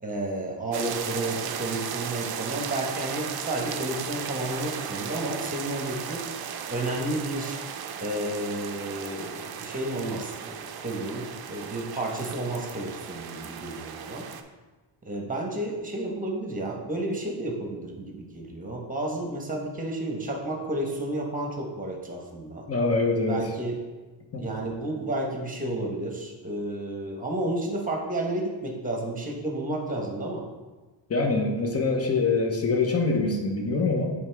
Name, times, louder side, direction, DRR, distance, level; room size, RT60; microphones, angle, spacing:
voice 1, 0.0-6.2 6.7-7.6 8.0-14.2 15.0-22.6 23.3-23.8 24.4-30.5, right 1 dB, 15° right, 0 dB, 1.1 m, -31 dB
sound 1, 0.7-14.4, right 8 dB, 50° right, 0.5 m, -36 dB
voice 2, 22.7-23.5 24.3-24.4 31.1-34.1, left 3 dB, 30° left, 3 dB, 0.8 m, -24 dB
8.6 x 3.5 x 3.4 m, 1.2 s
wide cardioid pair, 120°, 48 cm